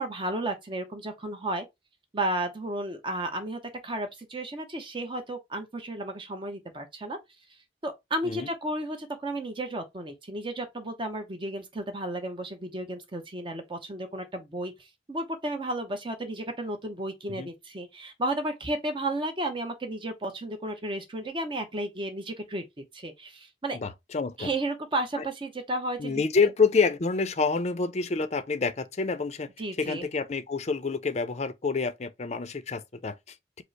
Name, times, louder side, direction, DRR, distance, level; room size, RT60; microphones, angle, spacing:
voice 1, 0.0-1.7 2.1-7.2 7.8-22.6 22.9-23.8 24.4-26.2 29.6-30.1, right 1 dB, 30° right, 0.7 m, -33 dB
voice 2, 23.7-24.5 25.2-25.3 26.0-29.5 29.8-33.6, left 4 dB, 40° left, 0.5 m, -28 dB
5.1 x 2.0 x 4.5 m
head